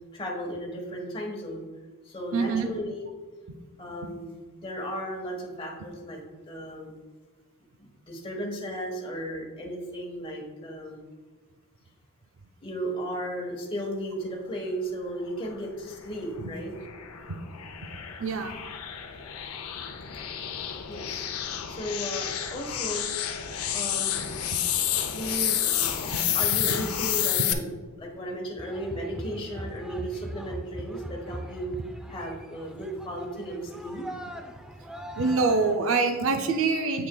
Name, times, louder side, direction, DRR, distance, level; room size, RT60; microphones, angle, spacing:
voice 1, 0.1-1.6 2.0-3.1 3.8-6.2 6.5-6.9 8.0-11.0 12.6-16.7 20.9-21.3 21.7-23.1 23.7-24.3 25.1-27.6 28.0-31.8 32.1-34.0, equal, 25° left, -1 dB, 1.2 m, -35 dB
voice 2, 2.3-2.7 16.4-16.5 17.3-17.4 18.2-18.6 35.2-37.1, right 4 dB, 65° right, 6 dB, 0.5 m, -25 dB
sound 1, 16.0-27.5, left 10 dB, 90° left, 0.6 m, -30 dB
sound 2, 28.6-35.7, right 1 dB, 5° right, 0.3 m, -40 dB
8.0 x 6.0 x 2.3 m, 1.4 s
head